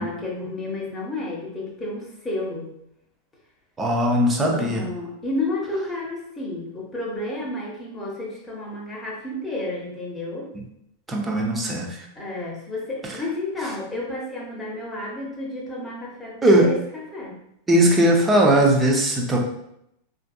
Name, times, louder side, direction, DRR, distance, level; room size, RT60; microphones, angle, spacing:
voice 1, 0.0-2.7 4.5-10.5 12.2-17.4, left 1 dB, 10° left, -3 dB, 1.0 m, -31 dB
voice 2, 3.8-4.9 11.1-12.1 16.4-16.7 17.7-19.4, right 1 dB, 15° right, 0 dB, 0.7 m, -19 dB
4.4 x 2.6 x 2.3 m, 0.79 s
figure-of-eight pair, 90°, 0 cm